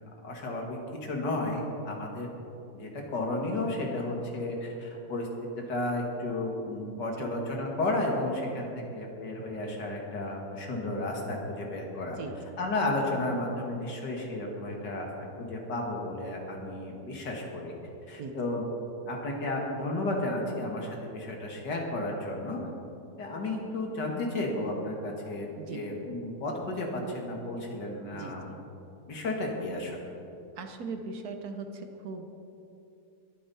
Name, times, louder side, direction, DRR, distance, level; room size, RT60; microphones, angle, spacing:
voice 1, 0.2-2.3 2.7-5.3 5.6-12.2 12.6-15.1 15.4-17.7 18.1-18.6 19.1-22.6 23.2-28.5 29.1-30.0, left 2 dB, 85° left, 0 dB, 2.6 m, -33 dB
voice 2, 6.9-7.3 12.2-12.4 18.2-18.4 25.6-25.9 28.1-28.6 30.6-32.3, right 4 dB, 65° right, 6 dB, 1.5 m, -40 dB
21.5 x 9.3 x 4.3 m, 2.8 s
omnidirectional pair, 1.8 m